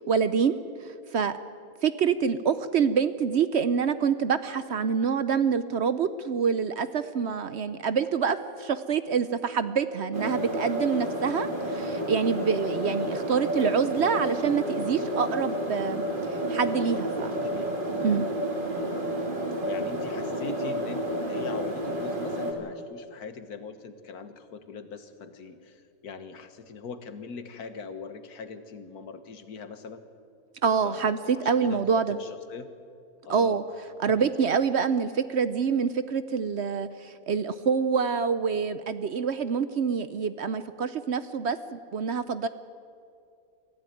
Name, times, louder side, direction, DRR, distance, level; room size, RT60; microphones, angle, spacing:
voice 1, 0.1-1.4 1.8-16.0 16.5-17.3 18.0-18.3 30.6-32.2 33.3-33.6 34.0-42.5, right 6 dB, 60° right, 13 dB, 0.8 m, -26 dB
sound 1, 10.1-22.5, right 1 dB, 35° right, 2.5 m, -30 dB
voice 2, 17.2-18.3 19.7-30.0 30.8-32.7 33.2-33.6 34.1-34.3, left 5 dB, 85° left, 10 dB, 1.8 m, -41 dB
23.5 x 15.0 x 9.1 m, 2.5 s
omnidirectional pair, 1.6 m